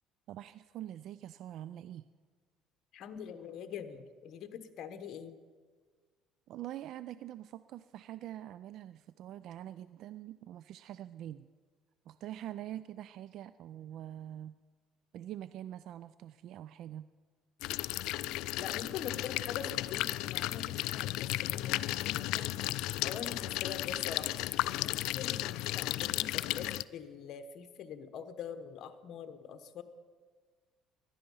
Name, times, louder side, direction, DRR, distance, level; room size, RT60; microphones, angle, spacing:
voice 1, 0.3-2.0 6.5-11.5 12.1-14.6 15.1-17.1, right 12 dB, 60° right, 14 dB, 0.3 m, -44 dB
voice 2, 2.9-5.4 18.6-22.4 23.0-24.5 24.8-29.8, left 7 dB, 55° left, 9 dB, 1.0 m, -44 dB
sound 1, 17.6-26.8, left 17 dB, 75° left, 0.3 m, -34 dB
16.5 x 11.5 x 5.5 m, 1.5 s
cardioid pair, 120°, 0 cm